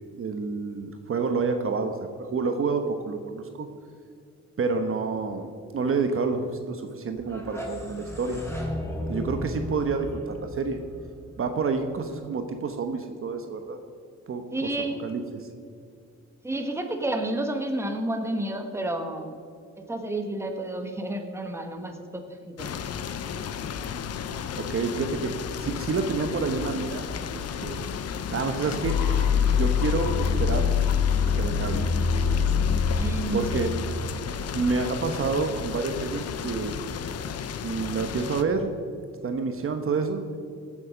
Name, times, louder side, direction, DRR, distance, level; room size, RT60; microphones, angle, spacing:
voice 1, 0.1-3.7 4.6-8.4 9.1-10.8 11.4-13.8 14.3-14.4 15.0-15.5 24.6-25.3 25.6-27.0 27.3-27.9 28.3-29.0 29.5-30.7 31.3-31.9 33.3-33.7 34.5-36.8 37.6-38.7 39.2-40.2, right 4 dB, 45° right, 6 dB, 1.1 m, -28 dB
sound 1, 7.2-12.1, left 1 dB, 10° left, 2.9 m, -35 dB
voice 2, 14.5-15.0 16.4-19.4 19.8-22.7 32.9-33.8, right 1 dB, 10° right, 5 dB, 1.4 m, -31 dB
sound 2, 22.6-38.4, left 7 dB, 55° left, 0.8 m, -33 dB
sound 3, 28.8-34.8, left 6 dB, 85° left, 1.3 m, -25 dB
16.5 x 7.4 x 5.1 m, 2.3 s
cardioid pair, 90°, 30 cm